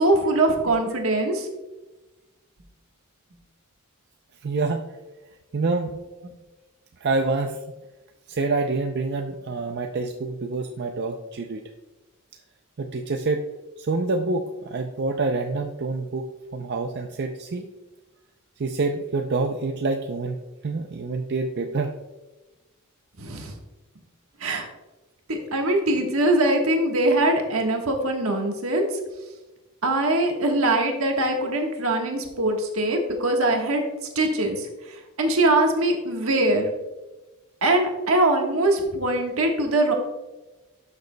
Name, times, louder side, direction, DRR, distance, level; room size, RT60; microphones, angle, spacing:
voice 1, 0.0-1.5 23.2-23.5 24.4-24.7 25.3-28.9 29.8-33.8 34.1-36.7 37.6-39.9, right 2 dB, 80° right, 2 dB, 1.3 m, -22 dB
voice 2, 4.4-4.8 5.5-5.9 7.0-7.6 8.3-11.6 12.8-13.4 13.8-17.7 18.6-20.4 20.6-21.9, right 3 dB, 50° right, 4 dB, 0.5 m, -27 dB
12.0 x 6.5 x 2.2 m, 1.1 s
head